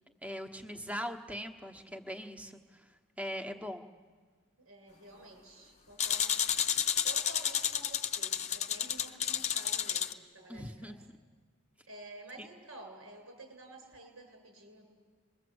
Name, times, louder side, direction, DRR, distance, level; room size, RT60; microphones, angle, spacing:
voice 1, 0.2-3.9 10.5-11.1 12.4-12.5, equal, 5° right, 6 dB, 1.1 m, -41 dB
voice 2, 4.6-6.4 6.7-10.9 11.9-14.9, right 2 dB, 85° right, 4 dB, 7.4 m, -51 dB
sound 1, 6.0-10.1, left 9 dB, 35° left, 0.8 m, -31 dB
28.5 x 22.0 x 7.9 m, 1.5 s
head